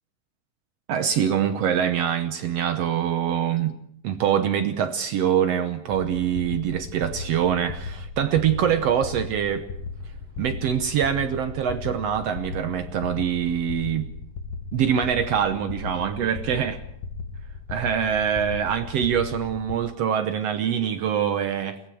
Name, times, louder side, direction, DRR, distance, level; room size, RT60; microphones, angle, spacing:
voice 1, 0.9-3.8 4.0-9.7 10.4-14.1 14.7-16.8 17.7-21.8, right 9 dB, 70° right, 9 dB, 1.6 m, -24 dB
sound 1, 5.9-19.8, left 4 dB, 60° left, 2.1 m, -36 dB
22.5 x 17.0 x 7.6 m, 0.74 s
omnidirectional pair, 3.9 m